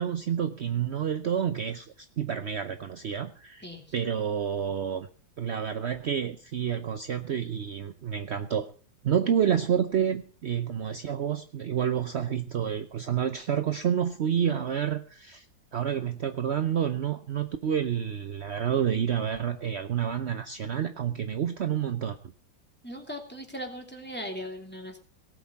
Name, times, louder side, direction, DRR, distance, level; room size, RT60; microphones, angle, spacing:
voice 1, 0.0-3.6 3.9-5.1 5.4-8.7 9.0-15.4 15.7-22.2, right 8 dB, 60° right, 9 dB, 0.7 m, -29 dB
voice 2, 22.8-25.0, equal, 5° left, 3 dB, 2.7 m, -38 dB
18.0 x 8.1 x 5.5 m, 0.41 s
omnidirectional pair, 2.1 m